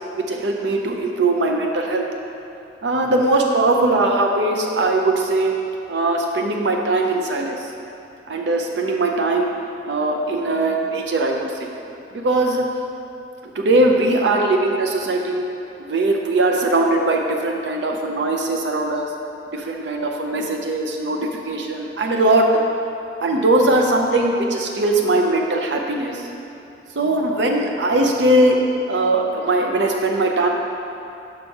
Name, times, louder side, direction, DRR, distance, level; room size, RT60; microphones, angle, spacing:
voice 1, 0.1-2.0 2.8-5.5 5.9-7.6 8.3-9.5 9.8-11.7 12.1-12.6 13.6-15.4 15.9-19.1 19.5-22.6 23.2-26.2 27.0-28.6 28.9-30.5, right 2 dB, 75° right, 1 dB, 0.5 m, -20 dB
6.5 x 5.3 x 4.6 m, 2.9 s
head